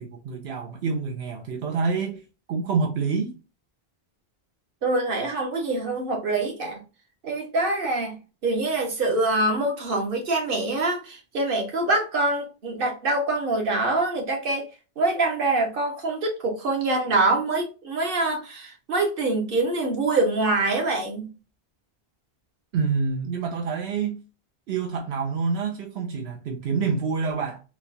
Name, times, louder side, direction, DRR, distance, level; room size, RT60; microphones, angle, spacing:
voice 1, 0.0-2.2 2.5-3.3 22.7-24.2 24.7-27.6, right 5 dB, 85° right, 0.9 m, -27 dB
voice 2, 4.8-6.8 7.2-8.2 8.4-14.7 15.0-21.3, right 2 dB, 60° right, 1.2 m, -25 dB
4.1 x 2.2 x 2.6 m
omnidirectional pair, 1.0 m